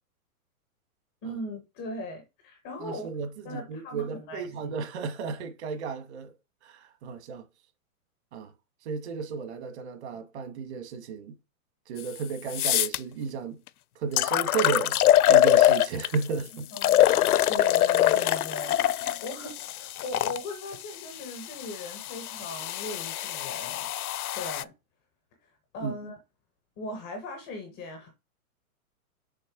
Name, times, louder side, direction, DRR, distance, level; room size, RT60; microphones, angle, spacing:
voice 1, 1.2-3.1 3.4-4.7 16.7-23.9 24.3-24.7 25.7-26.2 26.8-28.1, left 2 dB, 5° left, 0.4 m, -39 dB
voice 2, 2.8-6.3 6.6-7.4 8.3-8.5 8.8-11.3 11.9-13.6 14.0-15.0 15.3-16.7 25.8-25.9, right 5 dB, 45° right, 1.6 m, -33 dB
Water rocket - pouring acidolous water into glass, 12.0-12.1 12.5-13.0 13.7-13.8 14.2-16.2 16.8-20.4 21.2-24.6, left 12 dB, 80° left, 0.5 m, -24 dB
6.7 x 3.2 x 6.0 m
hypercardioid pair, 150°, 44 cm